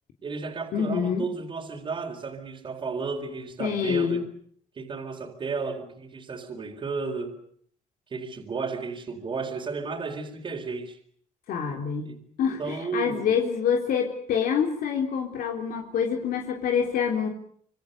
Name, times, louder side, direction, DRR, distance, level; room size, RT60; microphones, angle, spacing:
voice 1, 0.2-4.2 4.8-7.4 8.1-11.0 12.0-12.2 12.6-13.4, right 4 dB, 35° right, 4.2 m, -33 dB
voice 2, 0.7-1.3 3.6-4.3 11.5-17.3, left 7 dB, 75° left, 3.7 m, -26 dB
26.5 x 25.0 x 6.8 m
cardioid pair, 140°, 15 cm